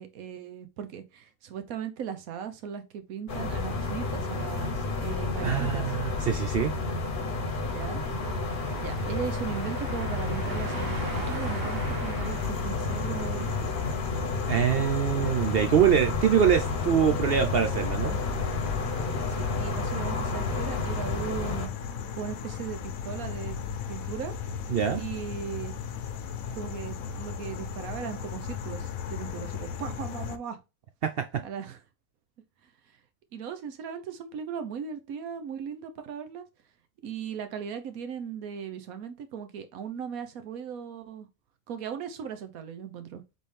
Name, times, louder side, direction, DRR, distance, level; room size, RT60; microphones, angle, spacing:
voice 1, 0.0-5.9 7.6-8.0 8.8-13.6 19.3-21.7 22.1-24.3 24.9-25.7 26.5-30.6 31.4-31.8 33.3-36.5 37.0-41.3 41.7-43.2, right 8 dB, 90° right, 1.2 m, -38 dB
sound 1, 3.3-21.7, left 3 dB, 45° left, 0.9 m, -31 dB
voice 2, 5.4-6.7 14.5-18.2 24.7-25.0 31.0-31.2, right 8 dB, 65° right, 0.6 m, -24 dB
sound 2, 7.7-14.3, right 2 dB, 45° right, 1.6 m, -42 dB
sound 3, 12.2-30.4, left 7 dB, 80° left, 1.1 m, -36 dB
4.1 x 3.7 x 3.2 m
omnidirectional pair, 1.4 m